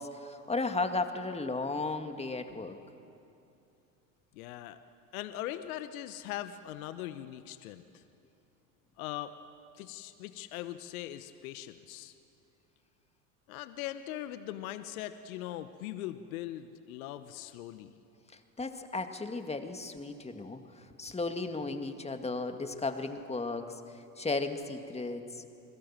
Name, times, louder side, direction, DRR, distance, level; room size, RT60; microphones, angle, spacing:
voice 1, 0.0-2.8 18.6-23.8 24.2-25.4, left 3 dB, 15° left, 6 dB, 2.1 m, -35 dB
voice 2, 4.3-4.8 5.1-8.0 9.0-9.3 9.7-12.1 13.5-18.0, left 13 dB, 70° left, 11 dB, 1.2 m, -40 dB
29.5 x 21.0 x 7.5 m, 2.7 s
hypercardioid pair, 85°, 43 cm